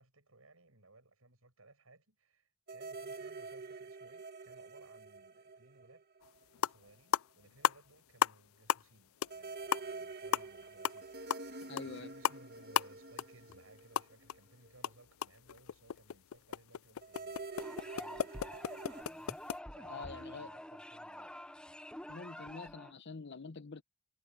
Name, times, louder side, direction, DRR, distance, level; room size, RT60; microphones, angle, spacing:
voice 1, 0.0-6.1 6.6-21.4, right 2 dB, 90° right, 6.6 m, -62 dB
sound 1, 2.7-6.4 6.7-6.8 9.3-14.7 17.0-19.0, right 3 dB, 50° right, 1.6 m, -47 dB
sound 2, 6.2-6.3 6.5-6.8 7.1-8.4 8.7-9.0 9.2-9.4 9.7-14.4 14.7-19.6, left 9 dB, 80° left, 0.4 m, -35 dB
voice 2, 11.7-12.1 19.9-20.5 22.1-23.8, left 4 dB, 60° left, 0.9 m, -46 dB
sound 3, 17.6-22.9, left 1 dB, 5° left, 0.7 m, -48 dB
head